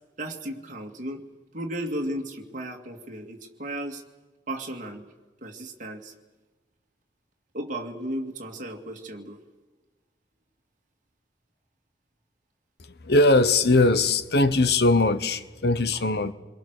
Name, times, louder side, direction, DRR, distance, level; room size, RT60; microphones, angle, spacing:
voice 1, 0.2-1.2 1.5-4.0 4.5-5.0 5.4-6.1 7.5-9.4, right 1 dB, 45° right, 2.5 m, -34 dB
voice 2, 13.0-16.3, left 2 dB, 65° left, 1.1 m, -20 dB
28.0 x 22.5 x 6.7 m
head